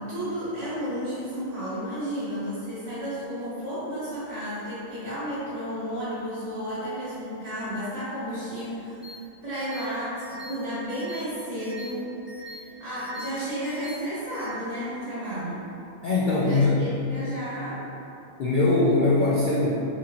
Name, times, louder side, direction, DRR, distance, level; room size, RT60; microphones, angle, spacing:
voice 1, 0.0-12.1 12.4-15.7 16.4-17.8, equal, 55° right, -12 dB, 1.7 m, -32 dB
sound 1, 9.0-9.2 9.5-9.8 10.2-10.5 10.9-11.2 11.6-11.9 12.3-12.6 13.0-13.3 13.6-14.0 14.3-14.5, right 1 dB, ahead, 0.6 m, -42 dB
voice 2, 16.0-16.8 18.4-19.7, left 2 dB, 75° left, -6 dB, 0.4 m, -21 dB
6.0 x 2.6 x 2.9 m, 2.9 s
omnidirectional pair, 1.4 m